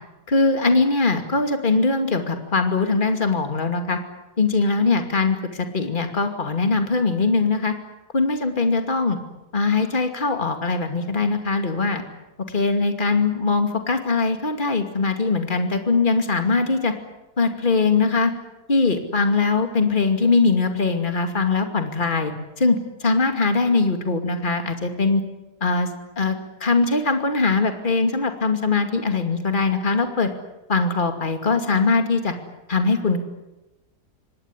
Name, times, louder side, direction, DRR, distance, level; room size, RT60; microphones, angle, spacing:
voice 1, 0.3-4.0 4.4-7.7 8.1-9.2 9.5-12.0 12.5-16.9 17.4-18.3 18.7-25.2 25.6-25.9 26.2-30.3 30.7-32.3 32.7-33.2, left 3 dB, 30° left, 6 dB, 2.6 m, -21 dB
26.0 x 19.5 x 9.9 m, 0.97 s
omnidirectional pair, 1.8 m